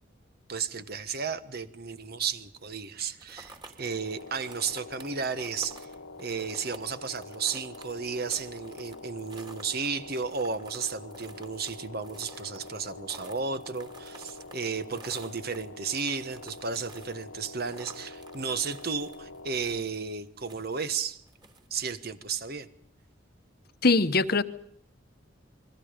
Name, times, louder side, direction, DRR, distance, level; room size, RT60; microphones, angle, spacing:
voice 1, 0.5-5.9 6.2-21.2 21.7-22.7, right 5 dB, 55° right, 11 dB, 1.4 m, -33 dB
sound 1, 3.2-21.7, right 2 dB, 25° right, 3.0 m, -52 dB
sound 2, 3.8-19.8, left 2 dB, 80° left, 1.0 m, -46 dB
voice 2, 23.8-24.4, left 3 dB, 55° left, 12 dB, 1.1 m, -22 dB
29.0 x 22.0 x 5.2 m, 0.65 s
head